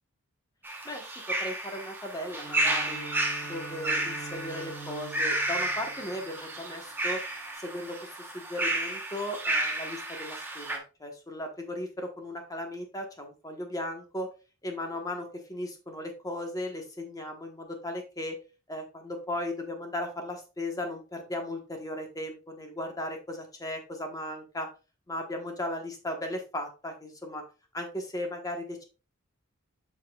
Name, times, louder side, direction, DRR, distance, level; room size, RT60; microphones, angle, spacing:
sound 1, 0.6-10.8, right 1 dB, 10° right, 1.0 m, -32 dB
voice 1, 0.8-3.0 3.5-7.2 7.6-14.3 14.6-18.4 18.7-24.7 25.1-27.4 27.7-28.8, left 1 dB, 15° left, 3 dB, 1.2 m, -36 dB
Bowed string instrument, 2.3-6.7, right 2 dB, 70° left, 1.7 m, -44 dB
7.3 x 6.0 x 2.3 m, 0.32 s
head